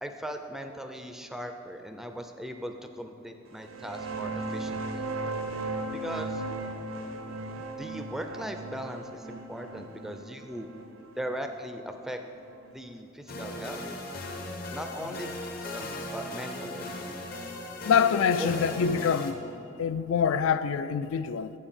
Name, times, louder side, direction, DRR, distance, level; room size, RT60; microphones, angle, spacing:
voice 1, 0.0-5.1 5.9-6.4 7.8-10.7 11.2-12.2 12.7-13.8 14.7-17.2 18.4-18.5, equal, ahead, 0.3 m, -39 dB
sound 1, 3.6-12.9, right 2 dB, 85° right, 0.6 m, -37 dB
sound 2, 13.3-19.3, left 2 dB, 50° left, 0.8 m, -38 dB
voice 2, 17.8-19.4 19.8-21.5, left 7 dB, 75° left, 0.3 m, -25 dB
7.1 x 6.9 x 5.6 m
head